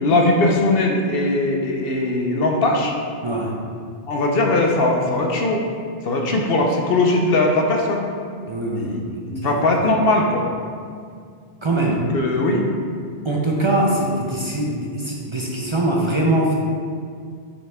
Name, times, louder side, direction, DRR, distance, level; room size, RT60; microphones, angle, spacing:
voice 1, 0.0-2.9 4.1-5.6 6.0-8.1 8.7-9.0 9.3-10.5 11.8-12.6, left 2 dB, 70° left, 1 dB, 1.0 m, -20 dB
voice 2, 8.5-9.2 9.4-9.5 11.6-12.0 13.2-16.5, right 1 dB, 35° right, -2 dB, 0.6 m, -22 dB
6.3 x 5.6 x 3.5 m, 2.1 s
omnidirectional pair, 1.0 m